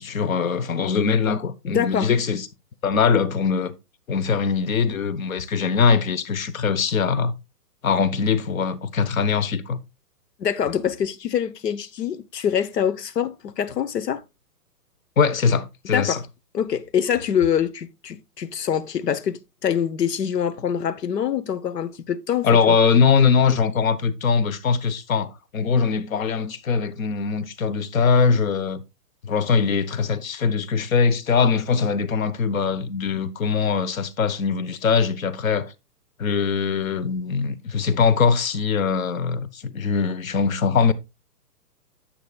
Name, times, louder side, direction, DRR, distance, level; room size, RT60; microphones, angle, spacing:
voice 1, 0.0-2.5 2.8-3.7 4.1-7.3 7.8-9.8 15.2-16.2 22.4-28.8 29.2-35.7 36.2-40.9, left 5 dB, 55° left, 1.0 m, -21 dB
voice 2, 1.6-2.1 10.4-14.2 15.9-16.2 16.5-22.8, left 8 dB, 85° left, 1.1 m, -25 dB
10.0 x 7.9 x 2.3 m
hypercardioid pair, 175°, 47 cm